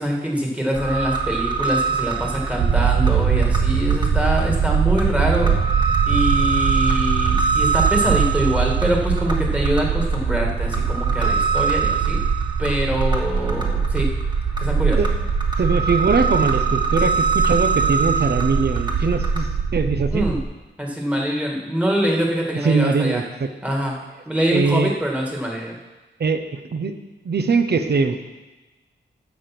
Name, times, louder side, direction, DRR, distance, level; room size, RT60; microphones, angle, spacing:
voice 1, 0.0-5.8 6.1-12.2 12.6-14.1 14.6-15.0 20.1-20.4 20.8-23.2 23.6-23.9 24.3-25.8, equal, 5° right, -1 dB, 1.8 m, -24 dB
sound 1, 0.7-19.4, right 4 dB, 20° right, 1.5 m, -25 dB
sound 2, 2.6-20.4, right 6 dB, 90° right, 0.8 m, -22 dB
voice 2, 15.6-20.3 22.5-23.5 24.5-25.0 26.2-27.0 27.2-28.2, right 4 dB, 55° right, 8 dB, 0.8 m, -21 dB
14.5 x 5.2 x 5.9 m, 1.1 s
wide cardioid pair, 130°, 20 cm